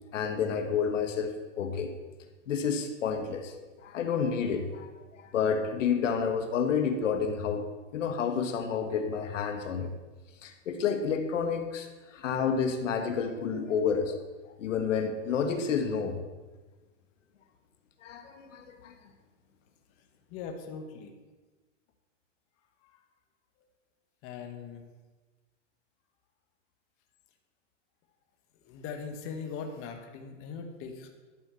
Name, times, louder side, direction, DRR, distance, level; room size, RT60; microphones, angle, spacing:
voice 1, 0.1-1.9 2.5-3.5 3.8-4.9 5.2-7.6 7.9-9.9 10.4-14.2 14.6-16.2 18.0-18.9, left 6 dB, 80° left, 6 dB, 1.4 m, -30 dB
voice 2, 20.3-21.1 22.8-23.0 24.2-24.8 28.6-31.1, left 5 dB, 35° left, 5 dB, 1.5 m, -40 dB
11.5 x 5.7 x 6.8 m, 1.2 s
hypercardioid pair, 130°, 37 cm